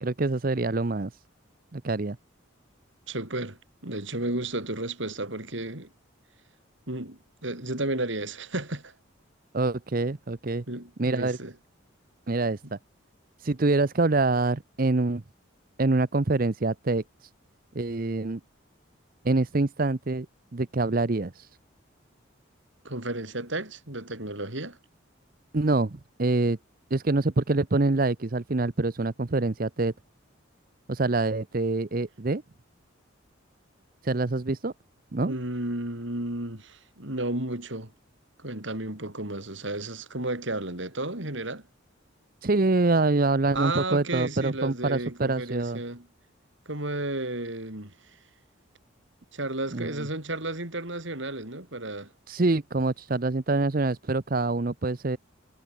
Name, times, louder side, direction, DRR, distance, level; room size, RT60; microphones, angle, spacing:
voice 1, 0.0-1.2 1.7-2.2 9.5-10.6 11.0-11.4 12.3-12.8 13.4-15.2 15.8-17.3 17.7-18.4 19.2-20.3 20.5-21.5 25.5-26.6 26.9-29.9 30.9-32.4 34.0-34.7 35.1-35.3 42.4-45.8 49.7-50.1 52.3-55.2, right 2 dB, 45° right, 0.7 m, -25 dB
voice 2, 3.1-5.9 6.9-8.9 10.7-11.5 22.8-24.8 35.3-37.9 38.4-41.7 43.5-46.1 46.7-47.9 49.3-52.1, right 2 dB, 65° right, 4.8 m, -33 dB
head